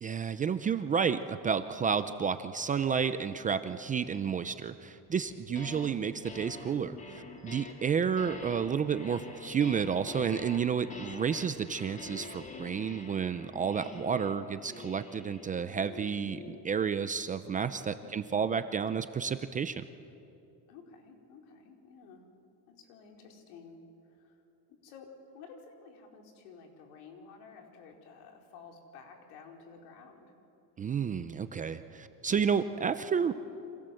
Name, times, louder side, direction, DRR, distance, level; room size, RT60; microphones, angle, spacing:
voice 1, 0.0-19.8 30.8-33.3, right 6 dB, 20° right, 10 dB, 0.5 m, -31 dB
sound 1, 5.3-5.9 6.2-16.7, left 3 dB, 15° left, 2.2 m, -46 dB
voice 2, 5.7-6.1 14.2-14.6 17.9-18.5 20.7-22.2 22.7-24.4 24.7-30.3, left 5 dB, 70° left, 2 dB, 4.8 m, -53 dB
29.0 x 26.5 x 7.8 m, 2.8 s
cardioid pair, 155°, 44 cm